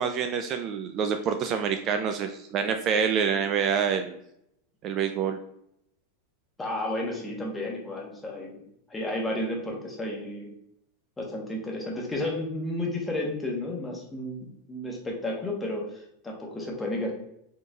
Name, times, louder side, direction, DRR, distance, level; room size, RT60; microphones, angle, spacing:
voice 1, 0.0-4.2 4.8-5.4, right 7 dB, 35° right, 7 dB, 0.3 m, -27 dB
voice 2, 6.6-8.6 8.9-10.5 11.2-17.1, left 1 dB, 10° left, -1 dB, 1.0 m, -32 dB
4.2 x 3.2 x 2.3 m, 0.75 s
supercardioid pair, 130°, 0 cm